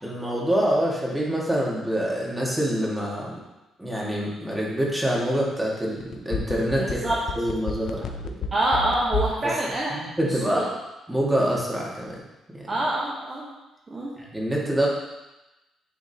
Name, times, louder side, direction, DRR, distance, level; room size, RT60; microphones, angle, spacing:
voice 1, 0.0-3.4 3.8-7.0 7.4-8.3 9.9-10.7 11.1-12.2 12.5-12.6 14.3-14.9, equal, 10° right, -4 dB, 1.8 m, -26 dB
sound 1, 6.0-9.4 9.7-9.8, left 5 dB, 75° left, 0.5 m, -30 dB
voice 2, 8.5-9.9 10.2-10.6 12.7-13.5 13.9-14.1, right 1 dB, 35° right, -5 dB, 1.2 m, -25 dB
9.8 x 3.6 x 2.9 m, 1.0 s
cardioid pair, 90°, 0 cm